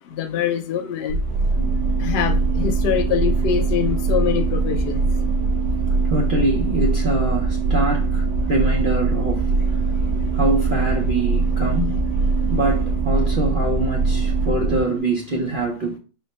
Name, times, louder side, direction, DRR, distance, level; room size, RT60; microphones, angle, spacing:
voice 1, 0.1-1.2 2.0-5.0, left 9 dB, 85° left, 0.5 m, -24 dB
sound 1, 1.1-14.8, right 3 dB, 85° right, 1.2 m, -22 dB
sound 2, 1.6-15.0, right 22 dB, 50° left, 0.8 m, -31 dB
voice 2, 6.1-9.6 10.3-11.9 12.5-16.0, right 2 dB, 55° right, 0.6 m, -24 dB
4.3 x 2.1 x 4.0 m
omnidirectional pair, 1.7 m